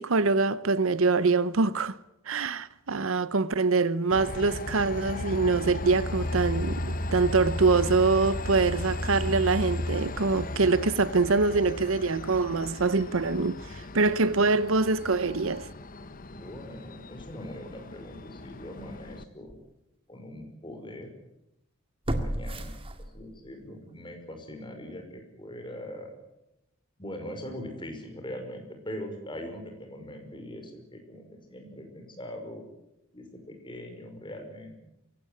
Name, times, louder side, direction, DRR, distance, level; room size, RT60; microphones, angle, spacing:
voice 1, 0.0-2.0 2.3-15.7, right 4 dB, 70° right, 0.8 m, -24 dB
Train, 4.1-19.2, left 2 dB, 40° left, 1.1 m, -35 dB
voice 2, 16.3-19.6 20.1-21.1 22.1-26.1 27.0-32.6 33.1-34.8, left 1 dB, 25° left, 5.5 m, -41 dB
sound 1, 18.8-18.9 19.5-19.6 22.0-23.5 23.9-24.0, right 1 dB, 25° right, 2.0 m, -33 dB
23.5 x 17.5 x 9.9 m
head